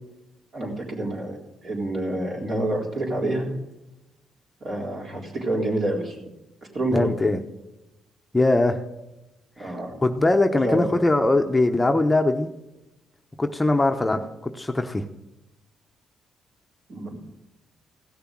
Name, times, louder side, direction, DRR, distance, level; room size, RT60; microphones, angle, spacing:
voice 1, 0.5-1.4 1.6-3.5 4.6-6.1 6.7-7.1 9.6-9.9 10.5-10.9 16.9-17.2, right 1 dB, 50° right, -1 dB, 3.9 m, -27 dB
voice 2, 6.9-7.4 8.3-8.8 9.6-9.7 10.0-12.5 13.4-15.0, left 2 dB, 15° left, 5 dB, 0.9 m, -21 dB
16.0 x 6.8 x 7.5 m, 0.97 s
cardioid pair, 90°, 0 cm